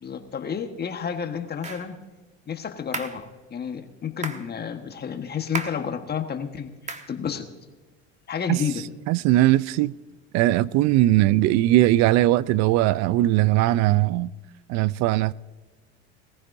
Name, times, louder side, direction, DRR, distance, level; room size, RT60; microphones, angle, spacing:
voice 1, 0.0-2.0 2.5-7.5 8.3-8.8, left 7 dB, 30° left, 1.4 m, -31 dB
sound 1, 1.6-1.9 2.9-3.2 4.2-4.5 5.5-5.9 6.9-7.1, right 4 dB, 20° right, 1.3 m, -33 dB
voice 2, 9.1-9.9 10.3-14.3 14.7-15.3, right 15 dB, 55° right, 0.5 m, -20 dB
21.0 x 15.0 x 2.7 m
supercardioid pair, 90°, 33 cm